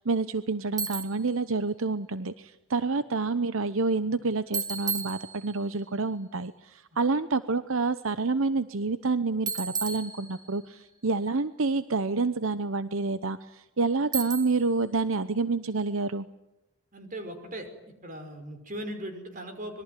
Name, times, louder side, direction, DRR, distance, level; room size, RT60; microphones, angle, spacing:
voice 1, 0.0-16.3, right 3 dB, 70° right, 13 dB, 0.9 m, -28 dB
Bicycle, 0.8-1.3 4.5-5.8 9.5-10.7 14.1-14.8, right 5 dB, 20° right, 1.8 m, -34 dB
voice 2, 16.9-17.7 18.0-19.8, right 1 dB, 40° right, 7 dB, 5.3 m, -38 dB
25.5 x 22.5 x 9.1 m, 0.91 s
head